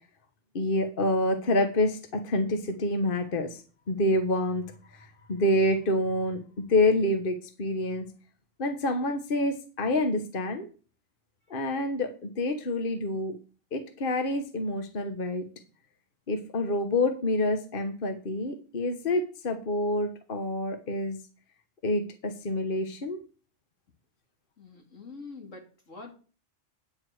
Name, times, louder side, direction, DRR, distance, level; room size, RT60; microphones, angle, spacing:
voice 1, 0.5-3.6 3.9-4.6 5.3-8.1 8.6-10.7 11.5-13.4 13.7-15.5 16.3-21.2 21.8-23.2, left 1 dB, 45° left, 7 dB, 1.3 m, -27 dB
voice 2, 24.6-26.2, left 3 dB, 85° left, 2 dB, 2.7 m, -45 dB
9.7 x 4.8 x 7.7 m, 0.38 s
omnidirectional pair, 1.3 m